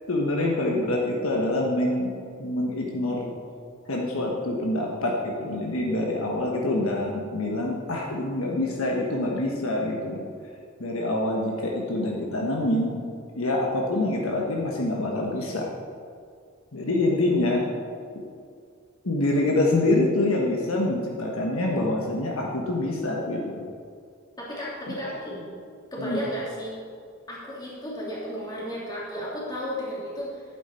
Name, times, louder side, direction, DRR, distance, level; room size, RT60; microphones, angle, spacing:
voice 1, 0.1-2.1 2.4-3.3 3.9-10.2 10.8-13.0 13.3-15.7 16.7-17.6 18.1-18.2 19.0-23.7 26.0-26.2, left 2 dB, 65° left, -1 dB, 1.3 m, -26 dB
voice 2, 24.4-25.5 25.9-26.8 27.3-30.4, equal, 20° left, -6 dB, 2.8 m, -33 dB
11.0 x 9.2 x 4.4 m, 2.2 s
head